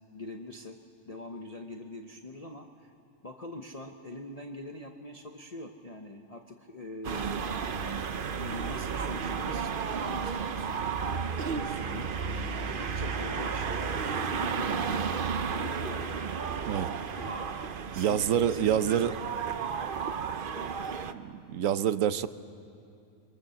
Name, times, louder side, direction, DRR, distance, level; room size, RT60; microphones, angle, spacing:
voice 1, 0.1-0.8 1.1-2.9 3.2-7.4 8.3-11.2 11.6-16.3 17.2-17.6 17.9-19.0 20.6-20.8, left 2 dB, 30° left, 2 dB, 0.9 m, -43 dB
sound 1, 7.0-21.1, right 6 dB, 45° right, 0.8 m, -33 dB
voice 2, 17.9-19.1 21.1-22.3, right 9 dB, 70° right, 13 dB, 1.1 m, -27 dB
25.0 x 24.0 x 7.0 m, 2.5 s
omnidirectional pair, 1.5 m